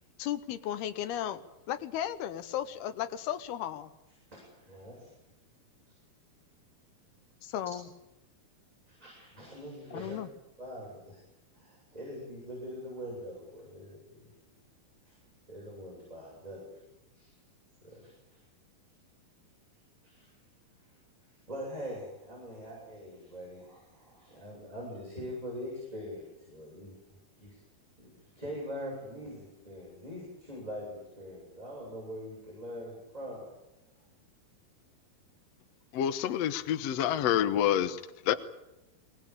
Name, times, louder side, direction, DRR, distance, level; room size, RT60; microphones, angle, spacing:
voice 1, 0.2-3.9 7.4-7.9 9.9-10.3, left 11 dB, 85° left, 11 dB, 3.0 m, -35 dB
voice 2, 4.5-5.1 8.9-10.2 10.6-11.2 11.5-14.3 15.0-15.1 15.5-16.6 17.1-17.3 17.8-18.4 20.0-20.3 21.5-27.0 27.4-27.6 28.0-33.5, equal, 10° right, -5 dB, 7.9 m, -43 dB
voice 3, 35.9-38.3, left 10 dB, 65° left, 12 dB, 1.7 m, -28 dB
22.5 x 19.0 x 8.8 m, 0.93 s
omnidirectional pair, 4.3 m